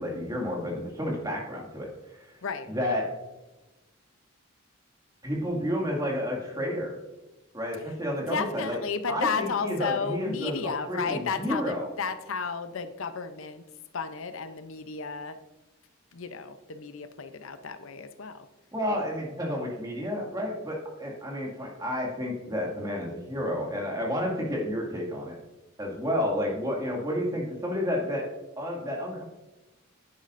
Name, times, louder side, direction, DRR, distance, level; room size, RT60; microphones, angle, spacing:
voice 1, 0.0-2.3 2.7-3.1 5.2-7.0 7.5-8.8 9.1-10.6 10.9-11.9 18.7-25.4 25.8-28.3 28.6-29.2, equal, 15° right, -2 dB, 2.1 m, -31 dB
voice 2, 2.4-2.9 8.3-13.6 13.9-15.4 16.1-18.5, left 5 dB, 75° left, 10 dB, 0.6 m, -33 dB
10.5 x 9.7 x 2.6 m, 1.1 s
head